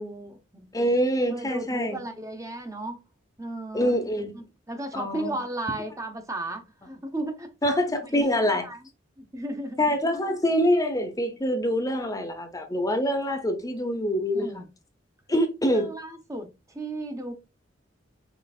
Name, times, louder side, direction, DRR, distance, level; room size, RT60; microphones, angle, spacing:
voice 1, 0.0-0.7 1.3-3.0 3.4-4.0 4.3-7.5 8.0-8.9 9.2-10.0 14.3-14.7 15.7-17.3, right 2 dB, 15° right, 0.9 m, -35 dB
voice 2, 0.7-2.0 3.7-4.3 4.9-5.4 7.6-8.7 9.8-14.6 15.3-15.9, equal, 20° left, 0.8 m, -25 dB
5.8 x 3.2 x 2.4 m
head